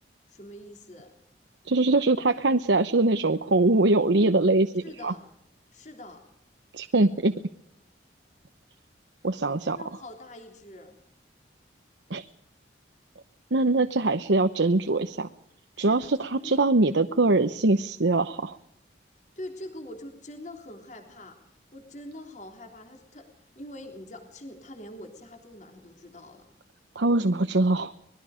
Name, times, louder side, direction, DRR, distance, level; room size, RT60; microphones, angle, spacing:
voice 1, 0.3-1.1 4.8-5.3 5.7-6.2 9.7-11.0 15.7-16.7 19.3-26.5, left 1 dB, 40° left, 4 dB, 3.4 m, -44 dB
voice 2, 1.6-5.1 6.7-7.3 9.2-9.8 12.1-12.3 13.5-15.3 15.8-18.6 26.9-27.9, right 2 dB, 80° right, 10 dB, 0.9 m, -23 dB
24.5 x 21.0 x 5.1 m, 0.75 s
head